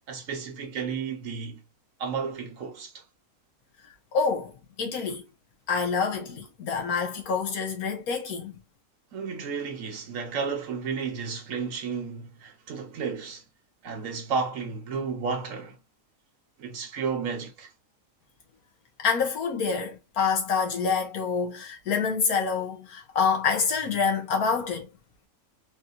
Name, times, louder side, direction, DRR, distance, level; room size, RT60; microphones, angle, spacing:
voice 1, 0.1-1.6 2.0-3.0 9.1-13.4 13.8-15.8 16.6-17.7, right 5 dB, 65° right, 1.2 m, -32 dB
voice 2, 4.1-5.3 5.7-8.5 19.0-24.9, left 5 dB, 85° left, 1.5 m, -27 dB
4.1 x 2.7 x 2.3 m
omnidirectional pair, 1.5 m